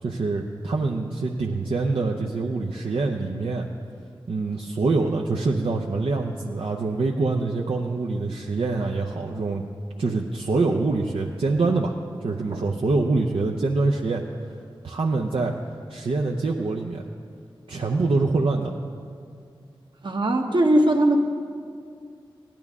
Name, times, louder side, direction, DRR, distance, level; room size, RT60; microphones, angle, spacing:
voice 1, 0.0-3.7 4.3-9.6 10.0-11.9 12.2-14.2 14.8-15.5 15.9-17.1 17.7-18.8, right 3 dB, 75° right, 0 dB, 0.6 m, -25 dB
voice 2, 20.0-21.2, right 1 dB, 60° right, 3 dB, 1.1 m, -20 dB
16.5 x 10.0 x 3.6 m, 2.3 s
cardioid pair, 45°, 9 cm